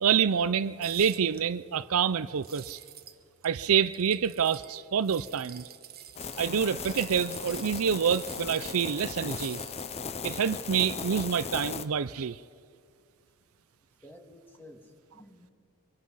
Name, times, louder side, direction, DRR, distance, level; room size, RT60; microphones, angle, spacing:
voice 1, 0.0-2.8 3.4-5.7 6.4-9.6 10.2-12.4, right 7 dB, 70° right, 15 dB, 0.5 m, -27 dB
sound 1, 0.8-1.4 2.4-3.2 3.4-4.7 5.0-8.8 9.2-10.0, right 11 dB, 45° right, 1.1 m, -48 dB
sound 2, 6.2-11.9, left 5 dB, 30° left, 0.6 m, -37 dB
voice 2, 13.9-15.5, left 1 dB, 10° left, 2 dB, 2.3 m, -52 dB
25.0 x 23.5 x 5.6 m, 2.2 s
head